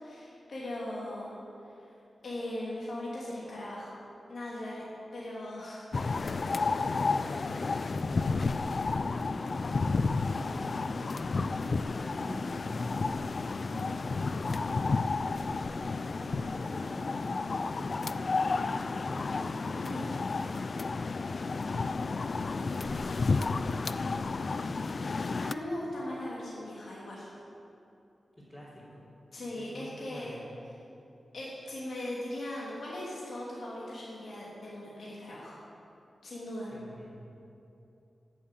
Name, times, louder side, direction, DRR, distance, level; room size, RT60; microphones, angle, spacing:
voice 1, 0.0-1.3 1.8-1.9 2.2-3.9 4.3-4.8 5.1-5.9 19.8-20.1 25.1-27.3 29.3-30.4 31.3-35.6 36.2-36.7, left 1 dB, 70° left, -7 dB, 2.9 m, -39 dB
sound 1, 5.9-25.5, left 4 dB, 50° left, 0.4 m, -31 dB
voice 2, 6.2-8.7 9.2-10.1 10.5-14.9 15.4-18.2 18.6-20.1 21.6-24.3 28.4-29.0 29.5-30.4 36.7-37.2, equal, 15° left, -10 dB, 3.5 m, -48 dB
13.0 x 7.4 x 8.4 m, 2.8 s
wide cardioid pair, 110°, 0 cm